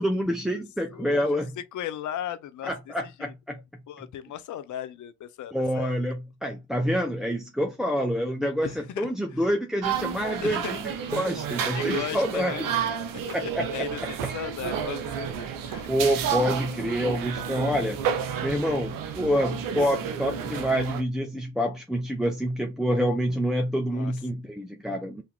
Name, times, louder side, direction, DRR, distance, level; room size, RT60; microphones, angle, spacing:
voice 1, 0.0-1.6 2.6-3.6 5.5-12.7 13.3-13.7 15.9-18.0 18.4-25.2, equal, ahead, 0.8 m, -27 dB
voice 2, 1.6-2.7 3.0-3.3 3.9-6.0 8.6-9.4 10.4-10.7 11.7-12.6 13.3-13.4 13.7-14.0 14.3-15.8 23.9-24.1, left 11 dB, 55° left, 0.7 m, -36 dB
sound 1, 9.8-21.0, right 8 dB, 70° right, 0.8 m, -31 dB
3.9 x 2.8 x 3.5 m
hypercardioid pair, 45°, 35 cm